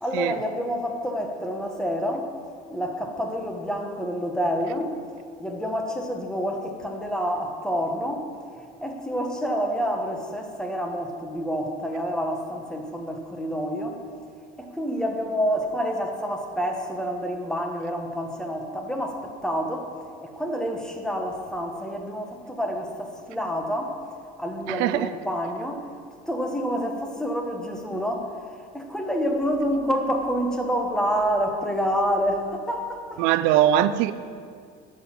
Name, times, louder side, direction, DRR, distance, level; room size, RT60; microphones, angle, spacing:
voice 1, 0.0-2.3 2.7-4.9 5.4-8.3 8.8-14.0 14.6-19.9 20.2-24.0 24.4-25.9 26.3-28.3 28.7-33.2, equal, 5° left, 1.4 m, -28 dB
voice 2, 24.7-25.1 33.2-34.1, right 12 dB, 80° right, 0.5 m, -21 dB
10.5 x 6.5 x 7.6 m
cardioid pair, 115°, 19 cm